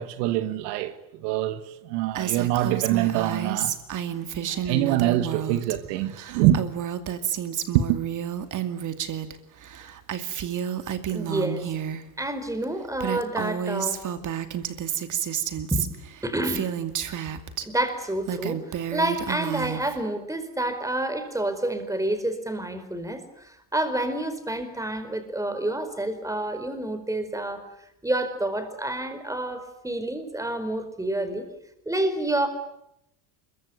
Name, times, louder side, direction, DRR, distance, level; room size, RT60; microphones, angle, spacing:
voice 1, 0.0-3.8 4.4-6.6 7.7-8.0, right 13 dB, 75° right, 2.0 m, -25 dB
Female speech woman speaking, 2.2-5.8 6.0-9.3 9.6-12.0 12.6-12.7 13.0-17.7 18.1-20.0, right 9 dB, 40° right, 2.4 m, -30 dB
voice 2, 11.1-11.7 12.2-14.0 15.7-15.9 16.2-16.7 17.6-27.7 28.0-31.4 31.8-32.5, right 1 dB, 5° right, 4.6 m, -28 dB
25.0 x 23.0 x 9.5 m
supercardioid pair, 110°, 48 cm